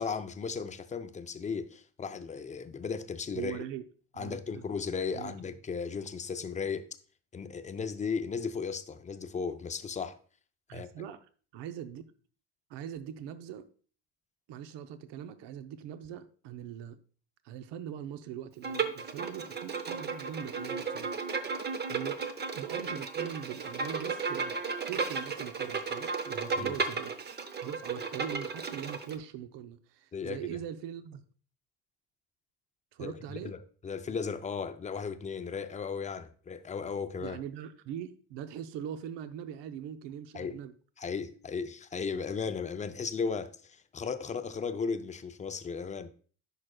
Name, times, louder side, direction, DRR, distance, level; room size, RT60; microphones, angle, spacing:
voice 1, 0.0-3.6 4.2-6.9 7.3-10.2 10.7-11.1 26.6-26.7 30.1-30.4 33.0-37.4 40.3-40.6 41.0-46.1, left 5 dB, 20° left, 0.4 m, -36 dB
voice 2, 3.3-3.9 4.1-4.6 5.1-5.4 10.7-11.3 11.5-12.1 12.7-13.7 14.5-17.0 17.4-21.1 21.9-22.3 22.5-24.5 24.9-27.2 27.6-31.2 32.9-33.5 37.2-40.7, right 9 dB, 70° right, 0.8 m, -41 dB
Bowed string instrument, 18.6-29.2, right 4 dB, 25° right, 0.6 m, -34 dB
10.5 x 5.0 x 2.2 m
cardioid pair, 105°, 44 cm